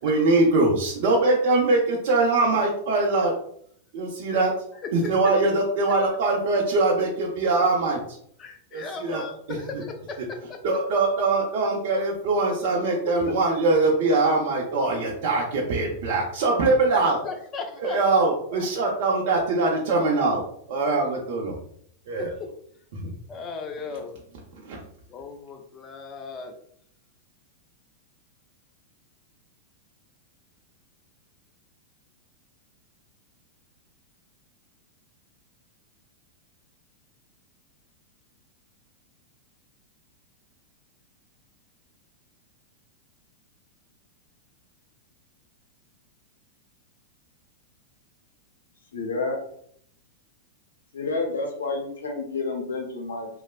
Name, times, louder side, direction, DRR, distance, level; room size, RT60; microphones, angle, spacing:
voice 1, 0.0-3.3 3.9-4.5 4.9-8.0 8.7-9.2 9.7-9.8 10.6-17.2 17.8-20.4 20.7-21.6 22.1-22.4 23.0-23.1 24.6-24.8, right 3 dB, 60° right, -2 dB, 0.5 m, -22 dB
voice 2, 8.4-10.6 13.0-13.4 16.9-18.0 18.5-18.7 22.2-22.5 23.3-24.2 25.1-26.5, left 4 dB, 30° left, 5 dB, 0.5 m, -37 dB
voice 3, 48.9-49.4 50.9-53.3, left 3 dB, 85° left, 1 dB, 0.8 m, -29 dB
3.1 x 2.1 x 2.3 m, 0.65 s
hypercardioid pair, 105°, 0 cm